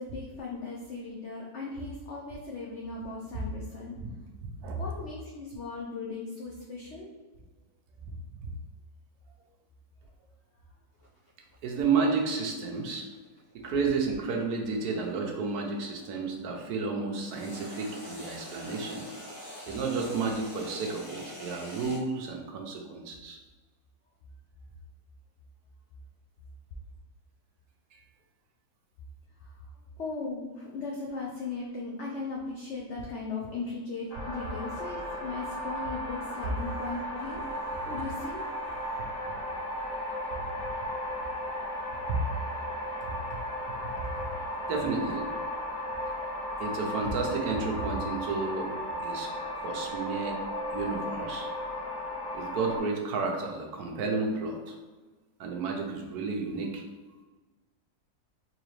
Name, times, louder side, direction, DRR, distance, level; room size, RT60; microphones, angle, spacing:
voice 1, 0.0-4.0 4.8-7.1 29.4-29.7 30.0-38.5, left 3 dB, 65° left, -2 dB, 0.7 m, -38 dB
sound 1, 11.0-16.2 17.3-22.0, equal, 45° left, 1.0 m, -45 dB
voice 2, 11.6-13.1 13.5-19.1 19.7-23.4 27.9-28.0 42.1-42.2 44.2-44.3 44.7-45.2 46.6-48.7 49.0-49.3 49.5-50.4 50.7-51.5 52.3-54.7 55.4-56.8, right 4 dB, 75° right, 1 dB, 1.2 m, -31 dB
sound 2, 34.1-52.8, left 1 dB, 90° left, 1.5 m, -35 dB
3.9 x 3.1 x 3.1 m, 1.2 s
omnidirectional pair, 1.7 m